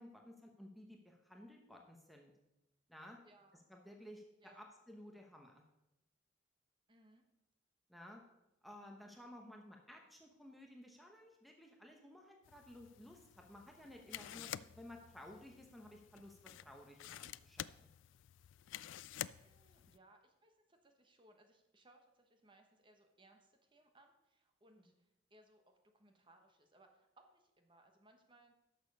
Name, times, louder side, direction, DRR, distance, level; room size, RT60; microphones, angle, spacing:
voice 1, 0.0-2.3 2.9-3.2 3.7-5.6 7.9-8.2 8.6-17.9, left 1 dB, ahead, 1 dB, 0.9 m, -56 dB
voice 2, 3.2-3.7 4.4-4.7 6.9-7.2 14.1-14.3 19.4-28.5, right 1 dB, 25° right, 4 dB, 1.1 m, -67 dB
sound 1, 12.4-20.0, left 12 dB, 85° left, 0.3 m, -50 dB
11.5 x 6.8 x 5.3 m, 0.92 s
head